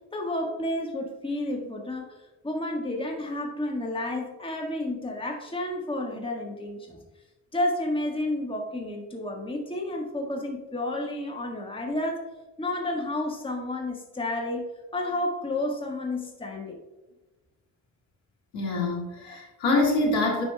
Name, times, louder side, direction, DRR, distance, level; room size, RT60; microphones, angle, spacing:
voice 1, 0.1-7.0 7.5-12.3 12.6-14.7 14.9-16.8 19.3-19.4, left 1 dB, 10° left, 1 dB, 1.5 m, -31 dB
voice 2, 18.5-20.4, left 2 dB, 80° left, -2 dB, 2.0 m, -25 dB
10.5 x 5.2 x 2.3 m, 1.1 s
hypercardioid pair, 40°, 45 cm